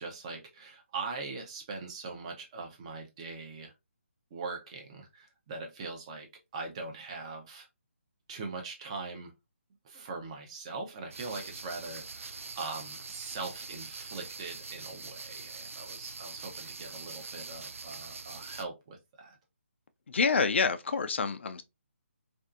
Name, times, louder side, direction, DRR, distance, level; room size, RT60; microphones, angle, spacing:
voice 1, 0.0-3.7 4.3-7.7 8.3-9.3 9.8-19.4, right 3 dB, 25° right, 0.6 m, -41 dB
sound 1, 11.1-18.6, right 4 dB, 80° right, 0.3 m, -43 dB
voice 2, 20.1-21.6, left 5 dB, 60° left, 0.3 m, -27 dB
2.6 x 2.4 x 2.3 m
figure-of-eight pair, 155°, 7 cm